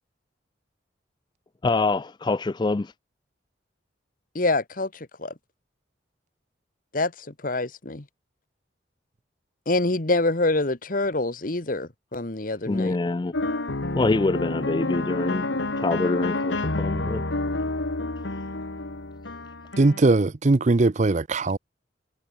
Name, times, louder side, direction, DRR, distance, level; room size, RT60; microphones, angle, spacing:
voice 1, 1.6-2.9 12.7-13.3 13.9-15.5 15.8-17.2, left 3 dB, 25° left, 0.4 m, -25 dB
voice 2, 4.3-5.3 6.9-8.0 9.6-13.0, left 2 dB, 45° left, 1.5 m, -26 dB
sound 1, 13.3-20.0, left 2 dB, 80° left, 1.9 m, -29 dB
voice 3, 19.8-21.6, right 2 dB, 40° right, 0.6 m, -20 dB
head